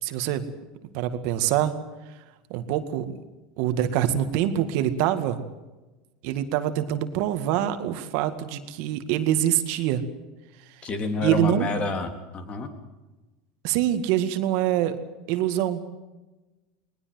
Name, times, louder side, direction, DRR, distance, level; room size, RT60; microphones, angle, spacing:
voice 1, 0.0-0.5 0.9-1.7 2.5-3.1 3.6-5.4 6.2-10.0 11.2-11.7 13.6-15.0 15.3-15.8, right 11 dB, 65° right, 9 dB, 2.0 m, -25 dB
voice 2, 10.8-12.7, left 3 dB, 35° left, 6 dB, 3.4 m, -28 dB
20.0 x 19.5 x 7.9 m, 1.1 s
supercardioid pair, 115°, 3 cm